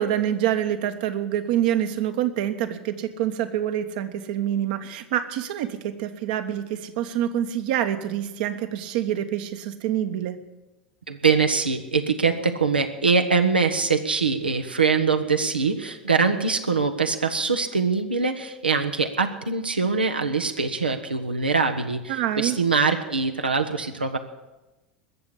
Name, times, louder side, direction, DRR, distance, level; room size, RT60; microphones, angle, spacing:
voice 1, 0.0-10.4 22.1-22.6, right 11 dB, 60° right, 8 dB, 1.3 m, -26 dB
voice 2, 11.1-24.2, right 4 dB, 85° right, 5 dB, 1.1 m, -23 dB
20.5 x 7.2 x 8.3 m, 1.1 s
figure-of-eight pair, 80°, 5 cm